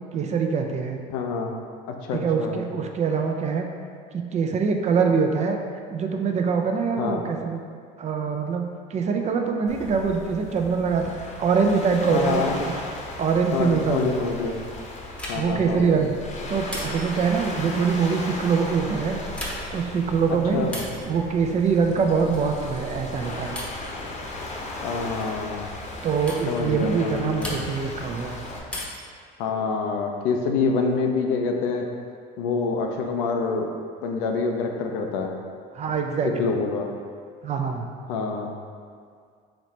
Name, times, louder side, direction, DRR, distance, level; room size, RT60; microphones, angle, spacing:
voice 1, 0.1-1.0 2.1-3.7 4.1-5.6 5.9-7.6 8.0-12.7 13.2-14.3 15.3-16.1 16.5-19.2 19.7-20.7 21.1-23.6 26.0-28.4 35.7-36.5 37.4-37.8, right 5 dB, 35° right, 4 dB, 0.4 m, -24 dB
voice 2, 1.1-1.5 1.9-2.7 7.0-7.2 12.1-12.6 13.5-14.5 15.3-16.0 20.5-20.8 24.8-25.7 26.5-27.6 29.4-31.9 32.4-33.7 34.0-35.3 36.4-36.9 38.1-38.6, left 4 dB, 85° left, 3 dB, 0.5 m, -26 dB
Waves surf, 9.7-28.6, left 2 dB, 35° left, 0.8 m, -36 dB
sound 1, 15.2-15.7 16.7-17.3 19.2-19.9 20.7-21.1 22.3-22.6 23.5-23.9 25.2-25.4 26.3-26.5 27.4-27.9 28.7-29.2 30.6-31.3, left 1 dB, 5° left, 0.8 m, -36 dB
4.0 x 3.2 x 3.0 m, 2.1 s
supercardioid pair, 85°, 19 cm